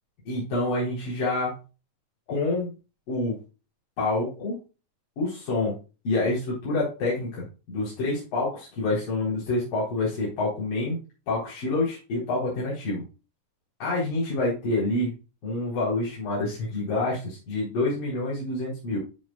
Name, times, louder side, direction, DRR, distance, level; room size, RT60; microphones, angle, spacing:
voice 1, 0.3-1.6 2.3-2.7 3.1-3.4 4.0-4.6 5.2-5.8 6.0-11.0 11.3-13.0 13.8-15.1 15.4-19.0, left 2 dB, 80° left, -7 dB, 6.0 m, -27 dB
13.5 x 5.4 x 2.4 m, 0.31 s
omnidirectional pair, 3.8 m